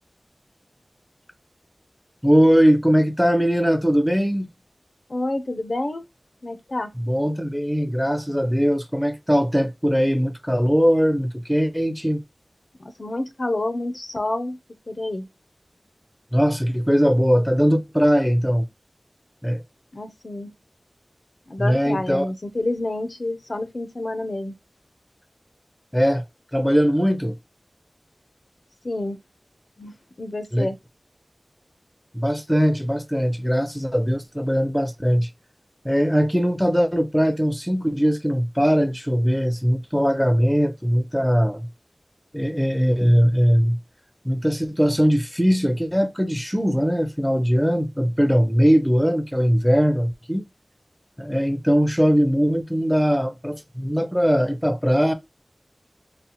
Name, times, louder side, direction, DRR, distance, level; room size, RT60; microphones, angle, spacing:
voice 1, 2.2-4.5 7.0-12.2 16.3-18.7 19.4-19.6 21.6-22.2 25.9-26.3 26.5-27.4 30.5-30.7 32.1-35.3 35.8-41.7 42.3-43.8 44.2-50.4 51.2-55.1, equal, ahead, 0.5 m, -20 dB
voice 2, 5.1-6.0 6.4-6.9 12.8-14.6 14.9-15.3 19.9-20.5 21.5-24.5 28.8-29.2 29.8-30.8, left 2 dB, 60° left, 0.5 m, -28 dB
3.9 x 2.0 x 2.8 m
wide cardioid pair, 60°, 0 cm